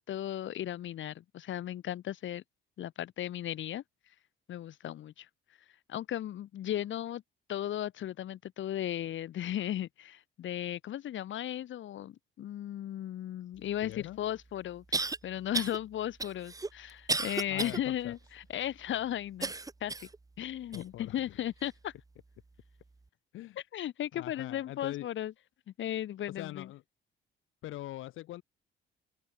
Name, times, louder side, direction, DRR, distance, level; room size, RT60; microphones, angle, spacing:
voice 1, 0.1-2.4 2.8-3.8 4.5-5.3 5.9-7.2 7.5-19.5 19.8-20.1 20.4-21.9 23.7-25.3 25.7-26.7, left 11 dB, 75° left, 5.8 m, -36 dB
voice 2, 13.8-14.2 17.5-18.1 20.7-21.4 23.3-23.6 24.1-25.1 26.3-26.8 27.6-28.4, left 15 dB, 90° left, 3.9 m, -43 dB
sound 1, 13.9-14.0 14.9-15.2 15.5-15.8 16.2-17.8 18.3-18.4 19.4-20.2 20.7-20.8 21.6-21.7, right 3 dB, 15° right, 1.1 m, -33 dB
open air
cardioid pair, 90°, 20 cm